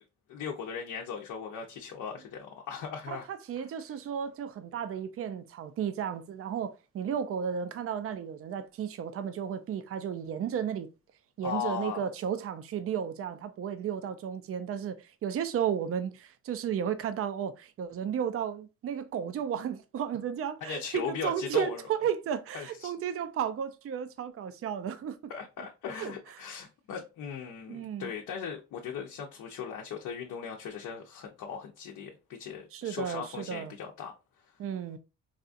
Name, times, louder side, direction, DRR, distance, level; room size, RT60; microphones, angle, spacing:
voice 1, 0.3-3.3 11.4-12.0 20.6-21.8 22.5-22.9 25.3-34.1, left 7 dB, 80° left, 0.7 m, -38 dB
voice 2, 3.1-10.9 11.4-25.3 25.9-26.1 26.4-26.5 27.7-28.1 32.7-33.7 34.6-35.0, right 8 dB, 50° right, 0.5 m, -33 dB
4.1 x 2.4 x 2.5 m
cardioid pair, 90°, 30 cm